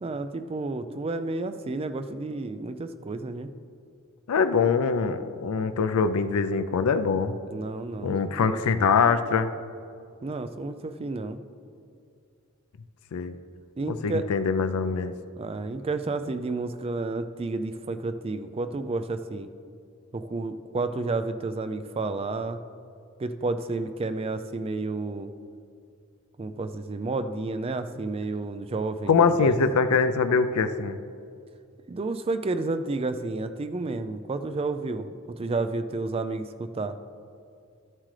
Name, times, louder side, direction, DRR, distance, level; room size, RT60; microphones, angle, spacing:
voice 1, 0.0-3.5 7.5-8.6 10.2-11.4 13.8-14.3 15.4-19.5 20.1-22.6 23.2-25.3 26.4-29.5 31.9-37.0, right 3 dB, 25° right, 10 dB, 0.3 m, -31 dB
voice 2, 4.3-7.3 8.0-9.5 13.1-13.4 14.0-15.1 29.1-31.0, left 5 dB, 85° left, 10 dB, 0.4 m, -23 dB
13.0 x 7.5 x 3.2 m, 2.4 s
head